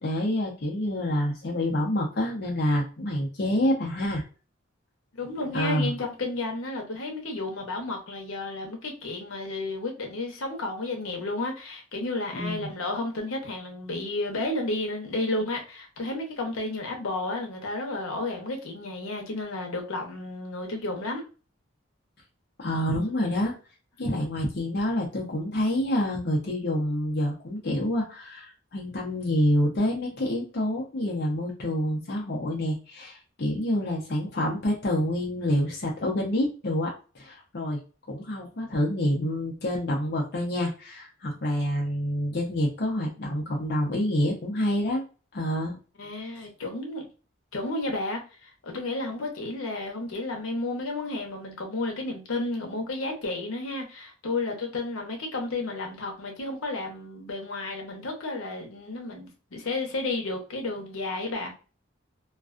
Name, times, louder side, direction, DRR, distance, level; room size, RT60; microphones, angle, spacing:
voice 1, 0.0-4.2 5.5-5.9 12.3-12.7 22.6-23.5 24.0-36.9 37.1-37.8 38.1-45.0 45.3-45.8, left 1 dB, 50° left, 0.6 m, -27 dB
voice 2, 5.2-21.2 46.0-47.1 47.5-61.5, left 2 dB, 85° left, 0.8 m, -32 dB
2.4 x 2.2 x 2.4 m
head